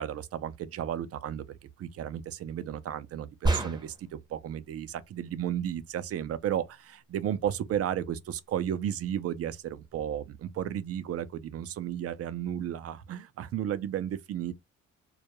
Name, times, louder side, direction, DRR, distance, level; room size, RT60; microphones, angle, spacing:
voice 1, 0.0-1.4 1.8-14.5, right 10 dB, 50° right, 0.4 m, -33 dB
sound 1, 3.4-4.2, right 2 dB, 15° right, 0.7 m, -28 dB
2.2 x 2.1 x 2.9 m
cardioid pair, 90°, 30 cm